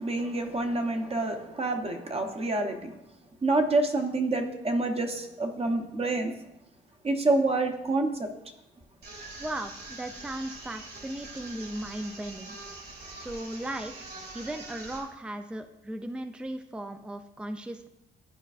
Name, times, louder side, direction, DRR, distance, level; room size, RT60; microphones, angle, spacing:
voice 1, 0.0-2.9 3.4-6.3 7.0-8.3, right 2 dB, 30° right, 4 dB, 0.9 m, -27 dB
sound 1, 9.0-15.0, right 2 dB, 50° right, 2.1 m, -44 dB
voice 2, 9.4-12.6 13.1-17.9, right 1 dB, 5° right, 7 dB, 0.5 m, -37 dB
11.5 x 4.5 x 2.5 m, 0.85 s
cardioid pair, 90°, 20 cm